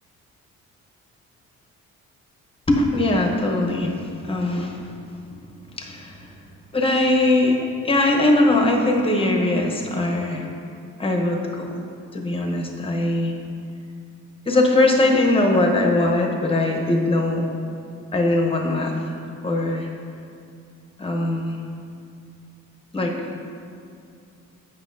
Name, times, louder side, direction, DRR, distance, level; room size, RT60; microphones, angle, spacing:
voice 1, 2.7-5.0 5.8-6.3 6.7-7.6 7.8-10.5 11.0-11.7 12.1-13.3 14.5-17.5 18.1-18.9 19.4-19.9 21.0-21.6 22.9-23.1, left 2 dB, 20° left, 1 dB, 0.9 m, -21 dB
8.1 x 5.9 x 2.6 m, 2.5 s
cardioid pair, 90°, 30 cm